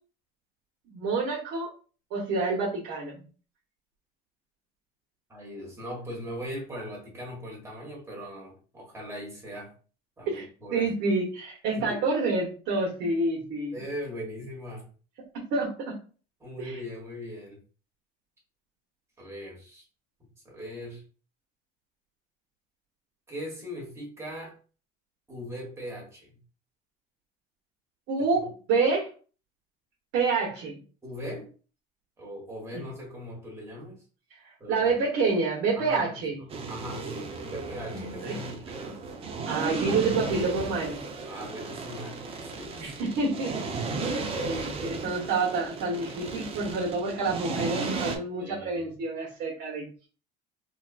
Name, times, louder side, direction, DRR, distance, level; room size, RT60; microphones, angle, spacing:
voice 1, 0.9-1.7 2.1-3.2 10.3-10.4 10.7-13.7 15.5-16.0 16.6-16.7 28.1-29.1 30.1-30.8 32.7-32.8 34.7-36.4 37.9-38.4 38.8-38.9 39.5-41.0 42.8-44.0 44.4-49.9, right 3 dB, 60° right, -3 dB, 1.1 m, -28 dB
voice 2, 5.3-9.7 10.2-10.9 11.7-12.0 13.7-14.9 16.4-17.6 19.2-19.8 20.4-21.0 23.3-24.5 25.3-26.4 28.3-28.4 31.0-31.5 32.2-34.0 34.6-34.8 35.8-38.9 41.2-43.0 46.6-46.7 48.4-48.9, equal, 15° right, -2 dB, 1.3 m, -40 dB
sound 1, 36.5-48.2, right 4 dB, 30° right, 0.5 m, -35 dB
3.9 x 2.4 x 2.4 m, 0.38 s
cardioid pair, 145°, 20 cm